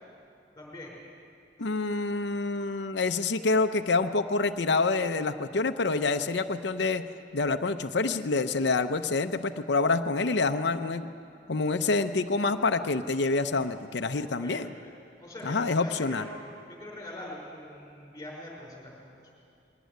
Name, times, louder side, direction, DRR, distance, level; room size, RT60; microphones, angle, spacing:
voice 1, 0.6-0.9 14.3-14.9 15.2-16.3 16.7-19.2, left 1 dB, 20° left, -3 dB, 5.3 m, -43 dB
voice 2, 1.6-7.0 7.3-11.1 11.5-14.7 15.4-16.3, left 3 dB, 70° left, 7 dB, 0.7 m, -27 dB
21.0 x 18.0 x 9.4 m, 2.6 s
head